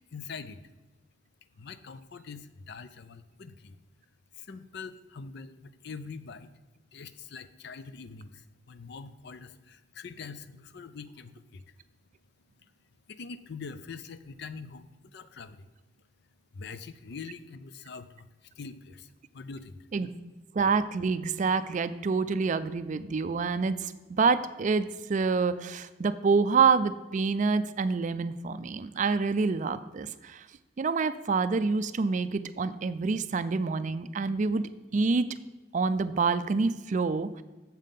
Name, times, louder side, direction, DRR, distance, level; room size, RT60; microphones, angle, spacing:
voice 1, 0.1-0.6 1.6-3.8 4.3-6.5 6.9-11.6 13.1-15.7 16.5-19.8, left 5 dB, 60° left, 12 dB, 0.5 m, -44 dB
voice 2, 20.5-30.5 30.8-35.3 35.7-37.4, right 4 dB, 40° right, 13 dB, 0.4 m, -27 dB
7.4 x 5.7 x 5.2 m, 1.2 s
head